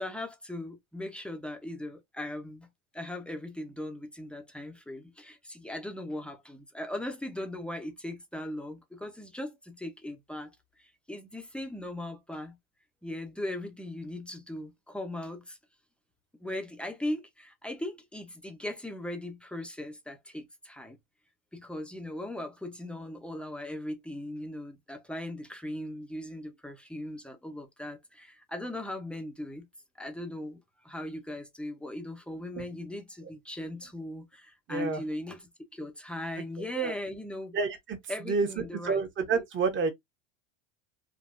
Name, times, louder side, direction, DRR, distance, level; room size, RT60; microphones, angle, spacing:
voice 1, 0.0-2.7 2.9-10.5 10.8-12.6 13.0-15.6 16.4-21.0 21.5-29.7 30.0-37.6 38.1-39.0 39.3-39.4, left 1 dB, 5° left, 0.5 m, -39 dB
voice 2, 34.7-35.0 36.4-36.9 37.5-39.9, right 4 dB, 30° right, 0.9 m, -30 dB
3.4 x 2.4 x 2.5 m
supercardioid pair, 125°, 40 cm